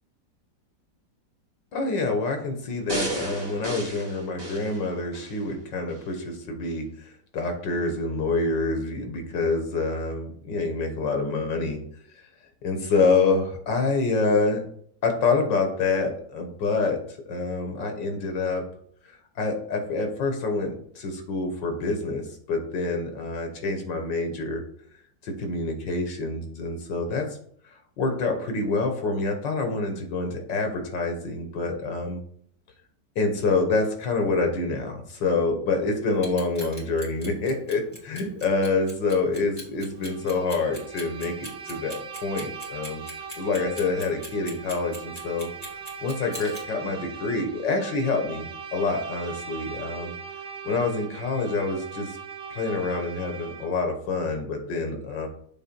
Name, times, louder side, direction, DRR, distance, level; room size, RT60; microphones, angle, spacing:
voice 1, 1.7-11.8 12.6-14.6 15.0-18.6 19.1-22.2 22.5-24.6 25.2-27.3 27.7-32.2 33.2-43.0 43.4-45.5 46.0-50.1 50.7-52.2 52.5-55.3, left 3 dB, 75° left, 4 dB, 1.9 m, -27 dB
sound 1, 2.9-5.4 5.9-6.0, right 1 dB, 15° right, 1.8 m, -33 dB
Clock, 36.1-46.6, equal, 10° left, 2.1 m, -41 dB
Bowed string instrument, 40.0-53.9, right 6 dB, 45° right, 0.8 m, -40 dB
8.0 x 3.6 x 4.5 m, 0.64 s
omnidirectional pair, 2.0 m